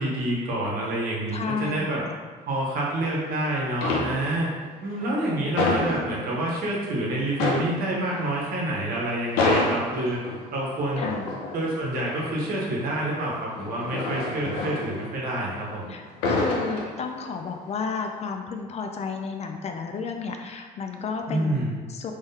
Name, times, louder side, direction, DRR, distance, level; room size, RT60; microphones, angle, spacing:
voice 1, 0.0-2.0 2.5-4.5 4.8-10.2 10.5-11.0 11.5-15.9 21.3-21.7, right 1 dB, 60° right, -4 dB, 1.2 m, -27 dB
voice 2, 1.3-2.2 11.0-11.4 15.9-21.6 21.9-22.1, left 5 dB, 40° left, 4 dB, 0.4 m, -32 dB
sound 1, 2.7-3.4 3.7-4.6 4.9-6.7 7.0-7.1 7.3-15.7 16.0-17.5 17.8-18.1, left 2 dB, 85° left, 0.7 m, -29 dB
3.6 x 3.2 x 2.7 m, 1.5 s
supercardioid pair, 85°, 17 cm